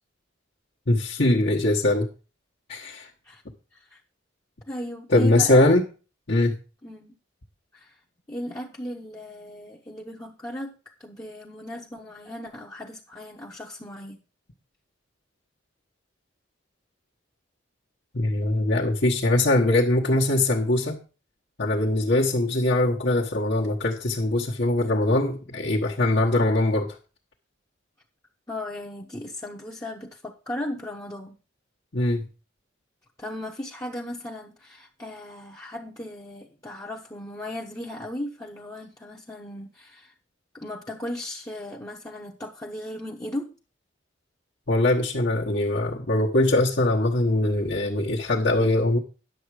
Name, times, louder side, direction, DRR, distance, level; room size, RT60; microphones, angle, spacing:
voice 1, 0.9-2.1 2.7-3.1 5.1-5.8 6.3-6.6 18.1-21.0 21.6-27.0 31.9-32.3 44.7-49.0, left 1 dB, 55° left, -5 dB, 1.2 m, -22 dB
voice 2, 4.7-5.7 6.8-7.1 7.7-7.9 8.3-10.7 11.0-14.2 28.5-31.4 33.2-40.1 40.5-43.5, left 1 dB, 15° left, -2 dB, 0.9 m, -36 dB
10.5 x 7.1 x 4.9 m, 0.35 s
head